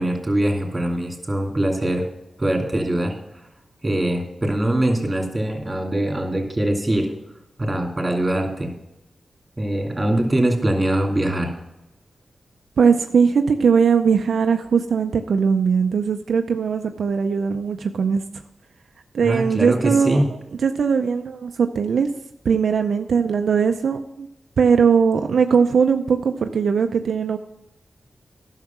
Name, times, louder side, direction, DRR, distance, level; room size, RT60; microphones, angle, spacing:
voice 1, 0.0-2.0 2.4-3.1 3.8-7.1 7.6-8.7 9.6-11.5 19.2-20.3, right 1 dB, 25° right, 1 dB, 2.7 m, -22 dB
voice 2, 12.8-18.2 19.1-20.2 20.6-22.1 22.4-24.3 24.6-27.4, right 6 dB, 80° right, 6 dB, 0.5 m, -19 dB
10.5 x 6.5 x 5.9 m, 0.90 s
cardioid pair, 60°, 0 cm